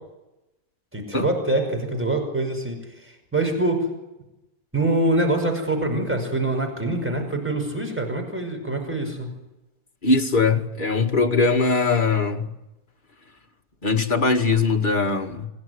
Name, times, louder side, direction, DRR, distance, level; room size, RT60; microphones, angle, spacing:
voice 1, 0.9-3.8 4.7-9.3, right 2 dB, 5° right, 5.6 m, -24 dB
voice 2, 10.0-12.4 13.8-15.5, left 4 dB, 30° left, 2.1 m, -21 dB
27.5 x 17.0 x 9.7 m
omnidirectional pair, 1.6 m